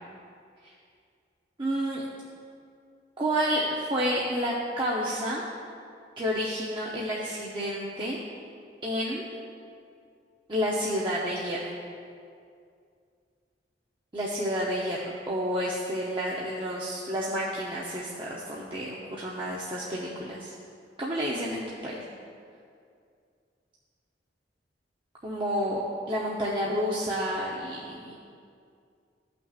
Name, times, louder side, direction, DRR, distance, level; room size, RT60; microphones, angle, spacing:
voice 1, 1.6-2.0 3.2-5.6 6.2-8.2 8.8-9.2 10.5-11.6 14.1-15.0 15.3-20.5 21.0-22.0 25.2-25.8 26.1-28.1, equal, 25° right, -5 dB, 0.7 m, -30 dB
14.5 x 5.9 x 2.4 m, 2.3 s
head